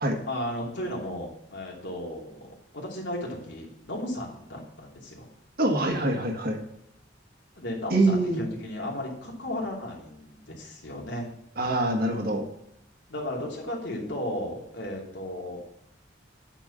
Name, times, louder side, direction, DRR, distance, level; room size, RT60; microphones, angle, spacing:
voice 1, 0.3-5.3 7.6-11.3 13.1-15.8, left 1 dB, 75° left, -2 dB, 2.9 m, -35 dB
voice 2, 5.6-6.6 7.9-8.4 11.6-12.4, right 2 dB, 55° right, 3 dB, 1.6 m, -24 dB
8.9 x 4.6 x 6.8 m, 0.80 s
head